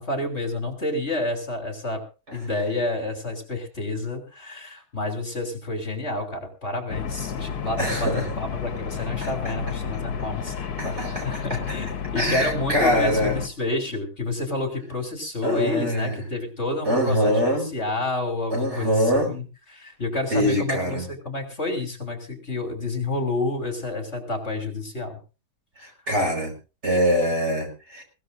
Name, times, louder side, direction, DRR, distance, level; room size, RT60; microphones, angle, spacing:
voice 1, 0.0-2.0 2.3-10.5 10.9-25.2, left 2 dB, 40° left, 3 dB, 3.3 m, -29 dB
sound 1, 6.9-13.5, left 7 dB, 70° left, 1.6 m, -32 dB
voice 2, 7.8-8.4 9.2-9.3 10.8-11.3 12.2-13.4 15.4-16.2 16.8-17.7 18.5-19.4 20.3-21.1 25.8-26.5 26.8-28.0, equal, 40° right, 2 dB, 5.4 m, -23 dB
21.0 x 17.5 x 2.6 m, 0.33 s
omnidirectional pair, 1.8 m